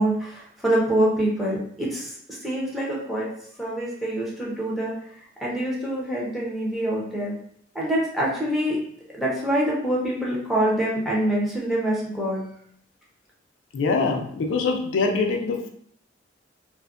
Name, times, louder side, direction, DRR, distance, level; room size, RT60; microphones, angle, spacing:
voice 1, 0.0-2.1 2.4-3.3 3.6-4.9 5.4-7.3 7.7-8.8 9.2-12.4, right 1 dB, ahead, -6 dB, 0.6 m, -25 dB
voice 2, 13.7-15.7, left 4 dB, 90° left, 4 dB, 0.4 m, -24 dB
2.4 x 2.1 x 2.4 m, 0.65 s
head